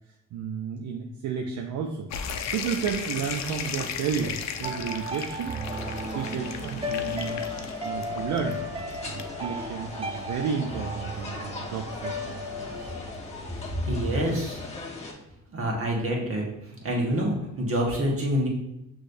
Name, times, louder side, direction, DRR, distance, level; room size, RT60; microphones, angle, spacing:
voice 1, 0.1-2.1 2.5-5.6 6.1-7.4 7.8-8.6 9.0-12.9, right 6 dB, 70° right, 3 dB, 0.5 m, -32 dB
sound 1, 2.1-13.4, left 7 dB, 65° left, 0.5 m, -37 dB
sound 2, 4.6-13.1, left 1 dB, 20° right, 0.4 m, -35 dB
sound 3, 5.6-15.1, left 3 dB, 20° left, 1.0 m, -40 dB
voice 2, 13.9-14.6 15.5-16.4 16.7-18.5, equal, 45° right, -1 dB, 1.3 m, -26 dB
6.4 x 3.1 x 2.6 m, 0.85 s
cardioid pair, 90°, 30 cm